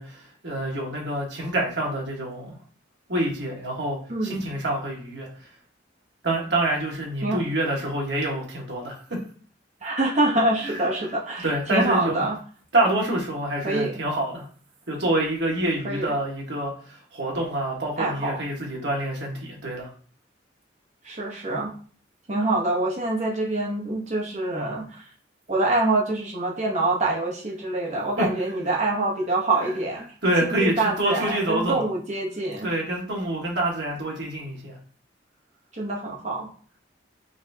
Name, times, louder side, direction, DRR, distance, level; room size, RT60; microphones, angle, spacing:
voice 1, 0.0-2.6 3.1-5.3 6.2-9.2 10.6-10.8 11.4-12.2 12.7-14.4 14.9-19.9 28.2-28.3 30.2-31.8 32.6-34.8, right 1 dB, 65° right, -2 dB, 1.4 m, -27 dB
voice 2, 4.1-4.5 7.2-7.4 9.8-12.4 13.6-14.0 15.8-16.1 18.0-18.4 21.0-21.7 22.3-25.0 25.5-30.0 30.4-32.7 35.7-36.5, right 2 dB, 40° right, -2 dB, 0.9 m, -25 dB
4.0 x 3.3 x 2.7 m, 0.43 s
head